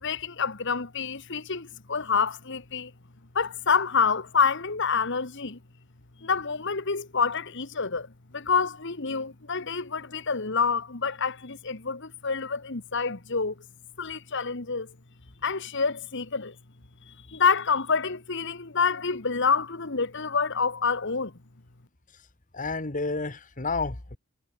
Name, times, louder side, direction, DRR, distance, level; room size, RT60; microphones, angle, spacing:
voice 1, 0.0-2.9 3.3-5.6 6.2-8.1 8.3-13.5 14.0-14.9 15.4-16.5 17.1-21.3, left 5 dB, 60° left, 1.7 m, -27 dB
voice 2, 22.5-24.2, left 3 dB, 40° left, 1.7 m, -30 dB
head